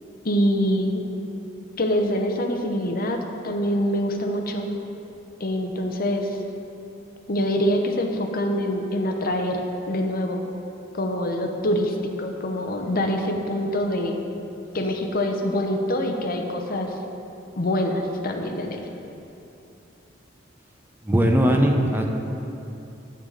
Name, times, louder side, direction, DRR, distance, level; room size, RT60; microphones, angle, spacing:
voice 1, 0.2-1.0 1.8-4.7 5.4-6.4 7.3-10.4 10.9-14.1 14.7-16.9 17.6-18.8, equal, 50° left, 4 dB, 0.8 m, -25 dB
voice 2, 21.0-22.0, equal, 10° right, 2 dB, 0.6 m, -19 dB
12.0 x 4.0 x 7.5 m, 2.8 s
head